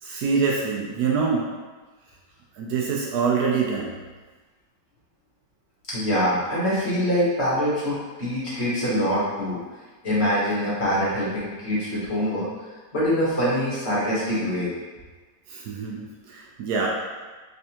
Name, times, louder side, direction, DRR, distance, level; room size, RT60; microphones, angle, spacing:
voice 1, 0.0-1.5 2.6-4.0 15.5-16.9, right 5 dB, 70° right, -2 dB, 1.0 m, -25 dB
voice 2, 5.9-9.6 10.0-12.5 12.9-14.7, equal, 45° left, -9 dB, 1.1 m, -24 dB
3.4 x 3.3 x 2.8 m, 1.3 s
omnidirectional pair, 1.9 m